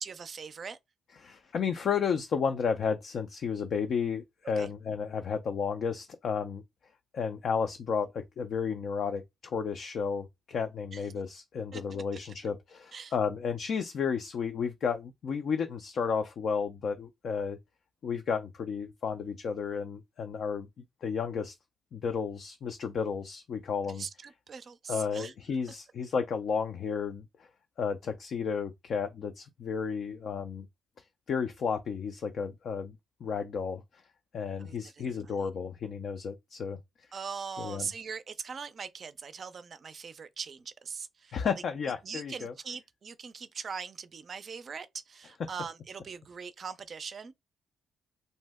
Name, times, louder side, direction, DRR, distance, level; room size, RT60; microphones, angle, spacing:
voice 1, 0.0-0.8 4.6-4.7 10.9-11.0 11.7-11.8 12.9-13.1 24.0-25.3 34.6-35.0 35.4-35.5 37.1-41.4 42.0-47.3, right 5 dB, 45° right, 0.4 m, -41 dB
voice 2, 1.2-6.6 7.1-17.6 18.0-20.7 21.0-21.6 21.9-24.0 24.9-27.2 27.8-30.7 31.3-33.0 33.2-34.0 34.3-36.8 37.6-37.9 41.3-42.5, left 6 dB, 60° left, 0.4 m, -32 dB
2.6 x 2.1 x 3.4 m
cardioid pair, 90°, 0 cm